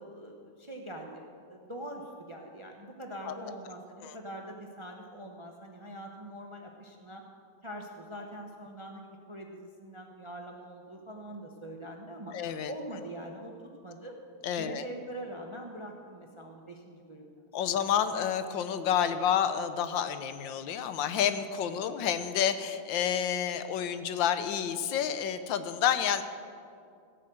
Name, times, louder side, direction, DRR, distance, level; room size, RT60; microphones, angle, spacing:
voice 1, 0.0-7.2 7.6-12.4 12.7-13.5 13.8-14.2 14.5-17.4 21.8-22.0, right 1 dB, 30° right, 2 dB, 0.6 m, -43 dB
voice 2, 12.3-12.7 14.4-14.8 17.5-26.2, left 9 dB, 85° left, 11 dB, 1.5 m, -29 dB
16.0 x 6.8 x 7.7 m, 2.4 s
omnidirectional pair, 2.0 m